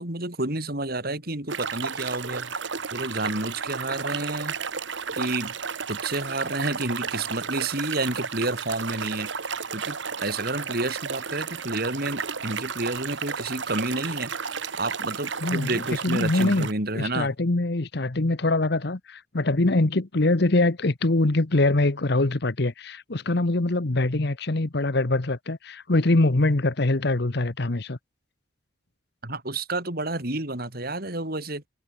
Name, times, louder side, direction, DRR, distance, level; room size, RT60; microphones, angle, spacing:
voice 1, 0.0-2.5 2.9-4.6 5.2-5.5 5.9-9.3 9.7-14.3 14.8-17.3 29.2-31.6, right 2 dB, 50° right, 4.2 m, -30 dB
sound 1, 1.5-16.7, right 6 dB, 70° right, 1.6 m, -33 dB
voice 2, 15.4-15.8 16.0-16.7 16.9-28.0, left 2 dB, 60° left, 1.1 m, -23 dB
head